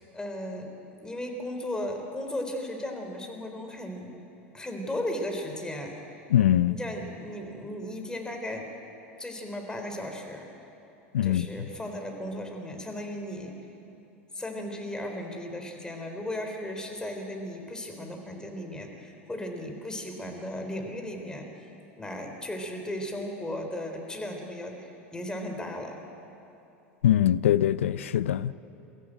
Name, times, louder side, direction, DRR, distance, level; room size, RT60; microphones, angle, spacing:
voice 1, 0.1-0.7 1.0-4.1 4.5-5.9 6.7-8.7 9.2-10.5 11.2-13.6 14.3-21.5 22.0-26.0, left 1 dB, 10° left, 3.7 m, -36 dB
voice 2, 6.3-6.8 11.1-11.5 27.0-28.5, left 11 dB, 80° left, 0.5 m, -22 dB
22.5 x 14.5 x 9.1 m
hypercardioid pair, 90°, 7 cm